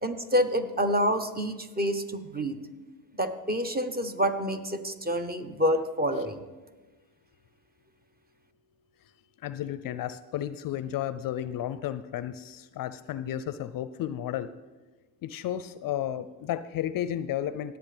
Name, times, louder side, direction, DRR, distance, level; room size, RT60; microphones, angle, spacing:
voice 1, 0.0-2.6 3.2-6.4, equal, 20° right, 9 dB, 1.1 m, -28 dB
voice 2, 9.4-14.5 15.2-17.8, left 11 dB, 50° left, 14 dB, 0.5 m, -33 dB
17.5 x 8.1 x 3.4 m, 1.2 s
hypercardioid pair, 65°, 44 cm